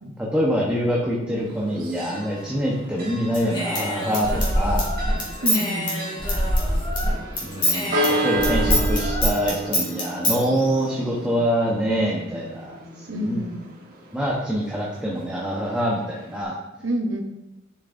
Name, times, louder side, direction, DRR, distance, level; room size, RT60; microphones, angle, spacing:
voice 1, 0.2-4.3 4.5-4.9 7.4-12.8 13.1-13.4 14.1-16.6, equal, 5° right, -5 dB, 1.0 m, -25 dB
Church bell, 1.4-16.4, right 2 dB, 50° right, 1.7 m, -33 dB
sound 1, 1.7-14.6, left 1 dB, 90° left, 1.2 m, -45 dB
Human voice / Scissors, 3.3-7.1 7.4-10.4, left 1 dB, 25° left, 2.3 m, -24 dB
voice 2, 5.4-6.1 13.1-13.6 16.8-17.2, right 1 dB, 80° right, 4 dB, 1.1 m, -27 dB
10.5 x 5.9 x 2.7 m, 0.93 s
head